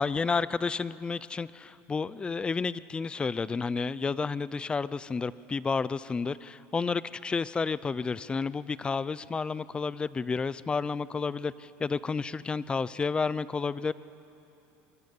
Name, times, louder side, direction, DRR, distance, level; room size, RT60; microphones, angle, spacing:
voice 1, 0.0-13.9, left 4 dB, 15° left, 18 dB, 0.5 m, -31 dB
25.5 x 22.5 x 8.3 m, 2.9 s
supercardioid pair, 130°, 6 cm